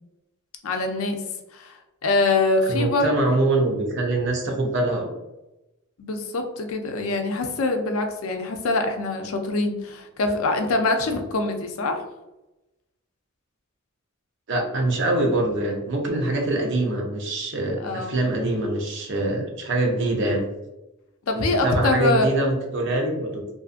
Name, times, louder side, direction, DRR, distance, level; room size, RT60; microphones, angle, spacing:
voice 1, 0.6-1.2 1.5-3.1 6.0-12.0 17.8-18.2 21.3-22.3, left 2 dB, 75° left, 5 dB, 0.4 m, -24 dB
voice 2, 2.6-5.1 14.5-20.5 21.3-23.4, right 2 dB, 55° right, 1 dB, 0.6 m, -24 dB
2.5 x 2.5 x 2.4 m, 0.99 s
head